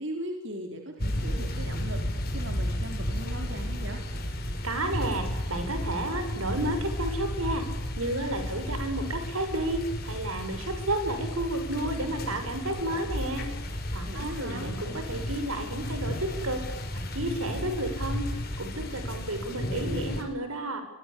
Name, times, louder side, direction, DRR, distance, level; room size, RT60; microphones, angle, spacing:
voice 1, 0.0-2.0 2.3-4.0 14.1-14.7, right 1 dB, 55° right, 3 dB, 4.3 m, -38 dB
sound 1, 1.0-20.2, left 1 dB, 45° left, 5.5 m, -33 dB
voice 2, 4.6-7.6 8.0-13.5 13.9-16.6 17.1-20.8, right 1 dB, 85° right, 7 dB, 6.7 m, -31 dB
26.5 x 24.0 x 8.6 m, 0.97 s
head